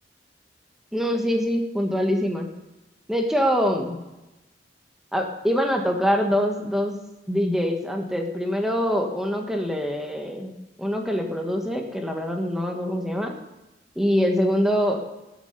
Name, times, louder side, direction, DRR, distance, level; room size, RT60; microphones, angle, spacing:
voice 1, 0.9-2.5 3.1-4.0 5.1-6.9 7.3-10.5 10.8-13.3 13.9-15.0, equal, ahead, 2 dB, 1.5 m, -24 dB
20.5 x 7.2 x 6.7 m, 1.0 s
head